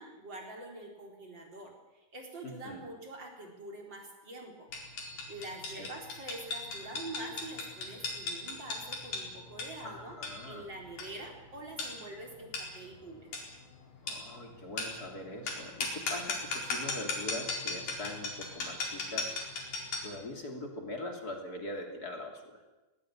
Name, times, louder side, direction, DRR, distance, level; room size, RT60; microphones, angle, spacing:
voice 1, 0.0-1.7 2.1-4.7 5.3-10.1 10.5-13.3, right 2 dB, 35° right, 1 dB, 4.6 m, -45 dB
voice 2, 2.4-2.8 5.6-5.9 9.8-10.7 14.0-19.4 20.0-22.6, left 1 dB, 30° left, 3 dB, 3.2 m, -42 dB
sound 1, 4.7-20.2, left 3 dB, 65° left, 5.8 m, -38 dB
19.5 x 19.0 x 10.0 m, 1.1 s
omnidirectional pair, 3.9 m